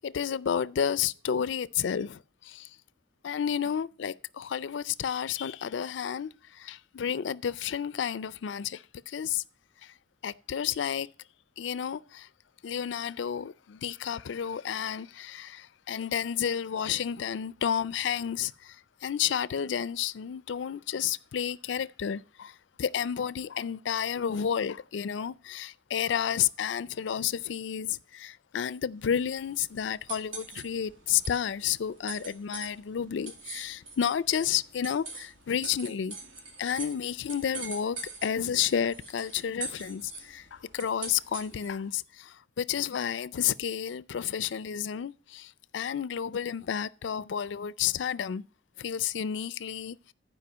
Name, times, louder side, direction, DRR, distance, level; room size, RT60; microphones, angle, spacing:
voice 1, 0.0-2.7 3.2-9.4 9.8-9.9 10.2-11.1 11.6-12.3 12.6-18.8 19.0-36.2 36.6-48.4 48.8-50.1, left 8 dB, 70° left, 0.4 m, -31 dB
sound 1, 29.0-41.9, right 3 dB, 90° right, 2.3 m, -44 dB
11.5 x 4.9 x 6.1 m
head